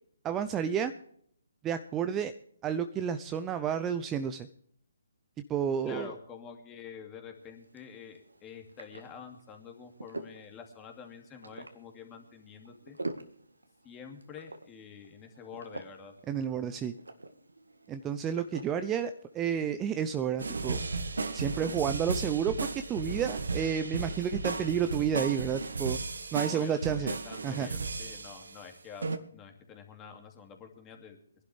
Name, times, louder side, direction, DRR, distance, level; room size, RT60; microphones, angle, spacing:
voice 1, 0.2-0.9 1.6-2.3 2.6-4.5 5.5-6.1 16.3-16.9 17.9-20.8 21.3-26.0 26.3-27.1 27.4-27.7, right 8 dB, 15° right, 10 dB, 0.6 m, -31 dB
voice 2, 5.8-13.0 13.8-16.1 26.4-31.2, left 6 dB, 20° left, 4 dB, 2.5 m, -47 dB
sound 1, 7.4-20.3, right 2 dB, 90° right, 1.7 m, -47 dB
sound 2, 20.4-28.6 29.0-29.2, right 3 dB, 70° right, 1.4 m, -35 dB
22.0 x 11.5 x 3.5 m, 0.64 s
figure-of-eight pair, 140°, 0 cm